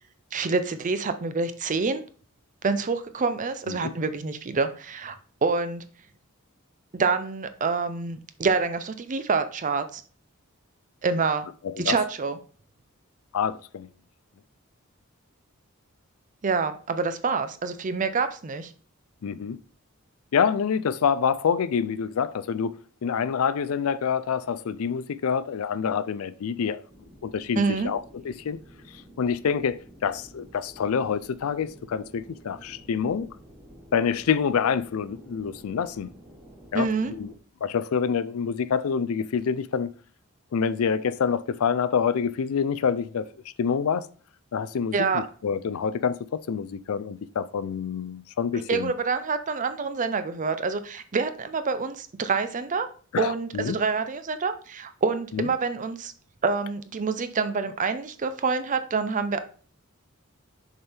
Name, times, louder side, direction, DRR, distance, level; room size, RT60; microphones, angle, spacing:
voice 1, 0.3-2.0 2.6-5.8 6.9-10.0 11.0-11.5 11.8-12.4 16.4-18.7 27.6-27.9 36.7-37.1 44.9-45.2 48.5-52.9 53.2-56.1 56.4-59.5, right 4 dB, 35° right, 0.5 m, -27 dB
voice 2, 11.6-12.0 13.3-13.9 19.2-19.6 20.3-22.7 23.0-26.8 27.2-28.6 29.2-33.3 33.9-36.1 36.7-37.3 37.6-39.9 40.5-43.3 43.6-44.1 44.5-48.9 53.1-53.8 55.3-55.5, left 6 dB, 85° left, 0.4 m, -27 dB
sound 1, 26.9-37.4, right 1 dB, 15° right, 1.6 m, -50 dB
6.7 x 4.4 x 3.4 m
head